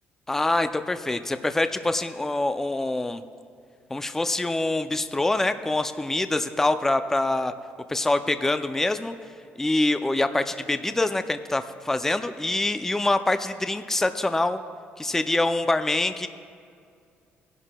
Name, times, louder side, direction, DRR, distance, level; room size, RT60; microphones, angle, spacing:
voice 1, 0.3-3.2 3.9-7.5 7.9-9.1 9.6-14.6 15.0-16.3, left 2 dB, 10° left, 9 dB, 0.4 m, -25 dB
18.5 x 11.0 x 2.2 m, 2.3 s
cardioid pair, 125°, 4 cm